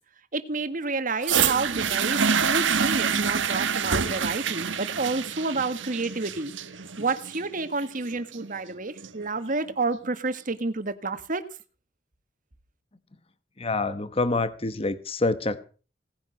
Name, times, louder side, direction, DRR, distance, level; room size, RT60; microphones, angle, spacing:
voice 1, 0.3-6.5 7.0-11.4, right 3 dB, 45° right, 1.6 m, -29 dB
sound 1, 1.2-9.2 10.0-10.1, right 6 dB, 85° right, 1.3 m, -27 dB
voice 2, 13.6-15.6, left 3 dB, 30° left, 1.0 m, -26 dB
18.0 x 10.5 x 6.3 m
head